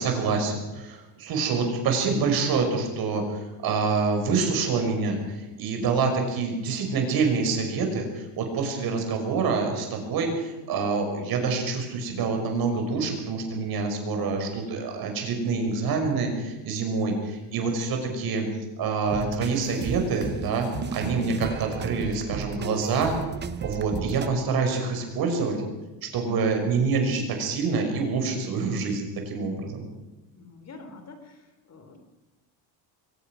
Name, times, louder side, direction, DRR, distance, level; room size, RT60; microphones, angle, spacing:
voice 1, 0.0-18.5 18.8-23.2 23.6-25.6 26.0-29.8, right 4 dB, 50° right, 4 dB, 5.9 m, -26 dB
sound 1, 19.1-24.3, right 6 dB, 25° right, 0.9 m, -33 dB
voice 2, 30.3-32.0, left 3 dB, 35° left, 7 dB, 3.3 m, -46 dB
22.5 x 19.0 x 6.2 m, 1.0 s
cardioid pair, 140°, 45 cm